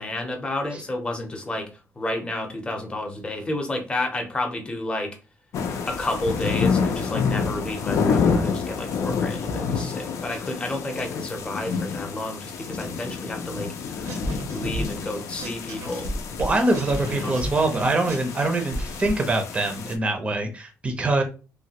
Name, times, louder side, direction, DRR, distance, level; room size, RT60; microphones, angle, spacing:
voice 1, 0.0-1.7 2.0-5.2 5.9-14.2 14.5-16.1 17.1-17.4, left 1 dB, 20° left, 0.7 m, -31 dB
sound 1, 5.5-19.9, left 5 dB, 70° left, 0.5 m, -28 dB
sound 2, 14.1-15.1 15.4-19.1, right 1 dB, 75° right, 0.8 m, -32 dB
voice 2, 16.4-21.2, right 2 dB, 20° right, 0.6 m, -24 dB
3.2 x 2.2 x 2.8 m
cardioid pair, 145°, 5 cm